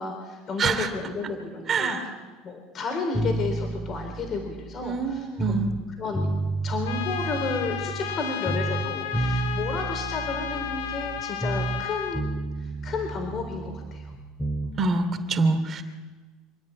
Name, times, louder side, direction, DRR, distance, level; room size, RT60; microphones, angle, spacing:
voice 1, 0.0-2.0 2.4-5.7 6.0-6.3 6.6-12.3 12.6-14.1, left 4 dB, 40° left, 3 dB, 4.2 m, -32 dB
voice 2, 1.7-2.0 4.8-5.7 14.7-15.8, right 4 dB, 35° right, 7 dB, 2.8 m, -25 dB
sound 1, 3.1-5.8 6.1-8.2 8.5-11.9 12.1-14.8, right 2 dB, 5° left, 2.5 m, -31 dB
Trumpet, 6.8-12.2, left 10 dB, 90° left, 1.6 m, -33 dB
27.0 x 10.5 x 9.6 m, 1.3 s
supercardioid pair, 115°, 0 cm